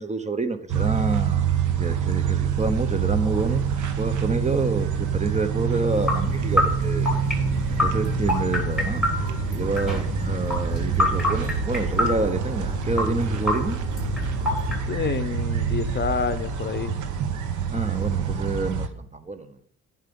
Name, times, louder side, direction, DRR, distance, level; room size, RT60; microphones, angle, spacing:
voice 1, 0.0-1.5 1.8-3.6 4.0-7.1 7.7-13.8 17.7-19.6, right 3 dB, 25° right, 0.8 m, -28 dB
sound 1, 0.7-18.9, right 7 dB, 75° right, 1.0 m, -26 dB
sound 2, 5.9-14.8, left 2 dB, ahead, 3.3 m, -27 dB
voice 2, 14.9-16.9, left 6 dB, 35° left, 0.7 m, -28 dB
9.7 x 5.8 x 5.3 m
cardioid pair, 90°, 30 cm